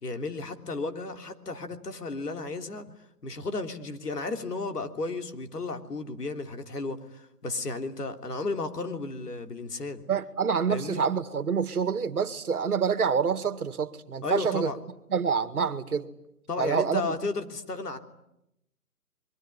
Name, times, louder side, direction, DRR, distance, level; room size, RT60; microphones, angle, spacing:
voice 1, 0.0-2.9 3.2-10.0 10.7-11.0 14.2-14.8 16.5-18.0, left 3 dB, 80° left, 6 dB, 3.4 m, -33 dB
voice 2, 10.1-14.7 15.1-16.1 16.6-17.2, right 6 dB, 65° right, 12 dB, 2.1 m, -27 dB
25.5 x 23.0 x 9.9 m, 0.82 s
hypercardioid pair, 170°, 47 cm